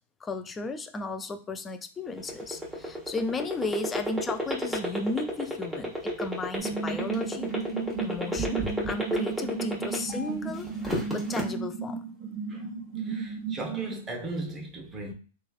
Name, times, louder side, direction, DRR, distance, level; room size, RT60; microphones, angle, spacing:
voice 1, 0.2-7.5 8.0-10.8 11.1-12.1, left 3 dB, 20° left, 0.4 m, -34 dB
sound 1, 2.1-10.3 10.7-11.4, right 1 dB, 5° right, 1.2 m, -30 dB
sound 2, 6.6-13.9, right 5 dB, 45° right, 0.9 m, -34 dB
voice 2, 13.0-15.1, right 2 dB, 20° right, 0.8 m, -37 dB
3.1 x 2.3 x 2.4 m
hypercardioid pair, 105°, 0 cm